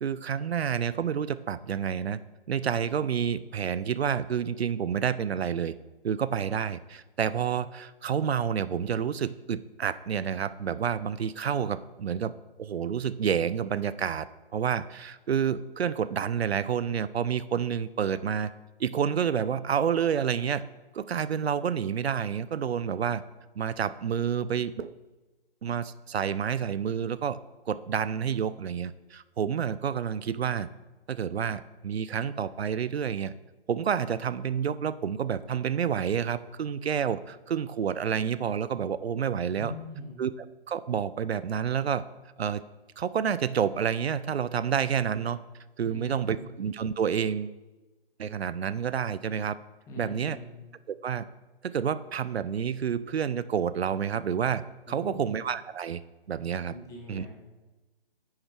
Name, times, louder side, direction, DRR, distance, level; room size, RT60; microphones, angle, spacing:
voice 1, 0.0-2.2 2.5-5.7 6.0-12.3 12.6-14.3 14.5-18.5 18.8-20.6 20.9-23.2 23.6-24.9 25.6-27.4 27.7-30.7 31.1-33.3 33.7-39.7 40.2-40.3 40.7-42.0 42.4-42.6 43.0-45.4 45.8-47.6 48.2-49.6 50.0-50.4 51.0-51.2 51.6-54.6 54.9-56.0 56.3-56.7 57.1-57.2, right 8 dB, 80° right, 15 dB, 0.5 m, -29 dB
voice 2, 39.5-40.2 45.8-46.5 49.9-50.5 54.9-55.3 56.7-57.3, left 1 dB, 10° left, -1 dB, 1.3 m, -42 dB
9.7 x 6.1 x 4.5 m, 1.1 s
figure-of-eight pair, 150°, 31 cm